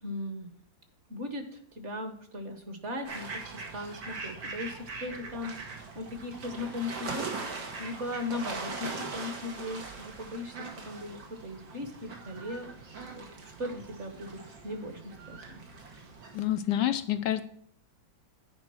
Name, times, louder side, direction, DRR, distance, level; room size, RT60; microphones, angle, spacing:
voice 1, 0.0-0.5 1.1-3.3 3.5-12.7 13.1-15.6, left 2 dB, 40° right, 6 dB, 1.4 m, -38 dB
sound 1, 3.0-16.4, right 3 dB, 80° right, 2.4 m, -41 dB
voice 2, 16.3-17.4, left 12 dB, 75° left, 10 dB, 1.2 m, -28 dB
9.6 x 5.0 x 6.1 m, 0.63 s
omnidirectional pair, 2.0 m